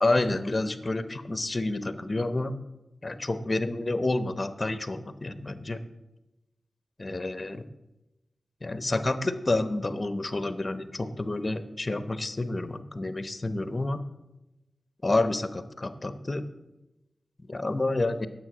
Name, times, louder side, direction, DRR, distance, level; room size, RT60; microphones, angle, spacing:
voice 1, 0.0-2.5 3.0-5.8 7.0-7.6 8.6-14.0 15.0-16.5 17.4-18.3, left 2 dB, 40° left, 12 dB, 0.9 m, -29 dB
9.6 x 7.9 x 6.2 m, 0.98 s
cardioid pair, 45°, 0 cm